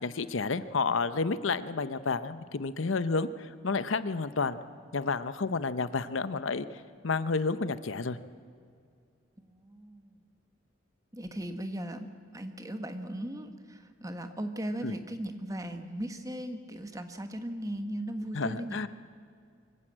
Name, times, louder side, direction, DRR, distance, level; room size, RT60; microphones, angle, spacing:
voice 1, 0.0-4.6 4.9-6.6 7.0-8.2 14.8-14.9 18.3-18.9, left 4 dB, 75° left, 14 dB, 0.8 m, -30 dB
voice 2, 9.4-10.2 11.1-18.9, right 1 dB, 15° right, 8 dB, 1.3 m, -38 dB
24.0 x 15.0 x 8.8 m, 2.3 s
head